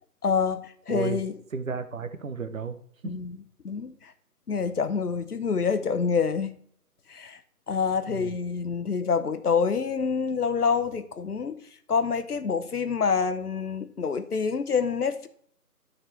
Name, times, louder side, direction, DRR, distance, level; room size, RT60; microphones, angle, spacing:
voice 1, 0.2-1.3 3.0-4.1 4.5-6.6 7.1-7.4 7.7-11.6 11.9-15.3, left 5 dB, 70° left, 11 dB, 0.8 m, -27 dB
voice 2, 0.9-1.2 1.5-2.8 3.0-3.1 8.1-8.4, right 5 dB, 60° right, 10 dB, 0.7 m, -33 dB
12.5 x 4.2 x 3.2 m, 0.64 s
figure-of-eight pair, 165°, 47 cm